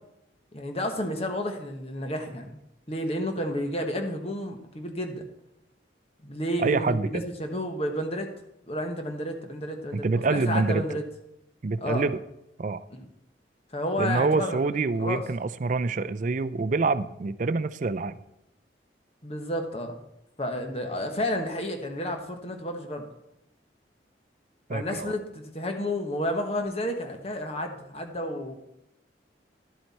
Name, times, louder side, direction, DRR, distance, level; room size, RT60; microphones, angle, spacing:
voice 1, 0.5-2.6 2.9-5.2 6.2-8.3 8.7-11.0 11.8-12.0 12.9-13.1 13.7-14.6 15.0-15.2 19.2-20.0 20.4-23.0 24.7-28.5, left 1 dB, 35° left, 4 dB, 1.3 m, -31 dB
voice 2, 6.6-7.2 9.9-10.8 11.6-12.2 12.6-12.8 14.0-18.2 24.7-25.1, right 3 dB, 45° right, 14 dB, 0.4 m, -26 dB
11.5 x 7.8 x 4.2 m, 0.83 s
head